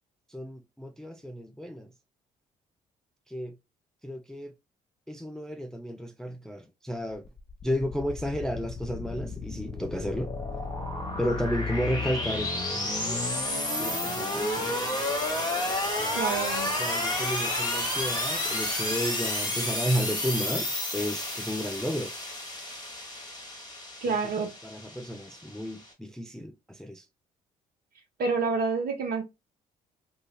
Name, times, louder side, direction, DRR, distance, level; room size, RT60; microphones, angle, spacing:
voice 1, 0.3-1.9 3.3-3.6 4.0-4.5 5.1-7.3 7.6-10.4 11.2-13.3 13.8-14.8 15.9-22.1 24.1-24.3 24.6-27.1, equal, 5° left, 0.4 m, -33 dB
sound 1, 7.2-25.9, left 1 dB, 20° left, 1.3 m, -31 dB
voice 2, 16.1-16.7 24.0-24.5 28.2-29.2, right 4 dB, 50° right, 1.1 m, -28 dB
2.7 x 2.5 x 3.3 m
hypercardioid pair, 45°, 19 cm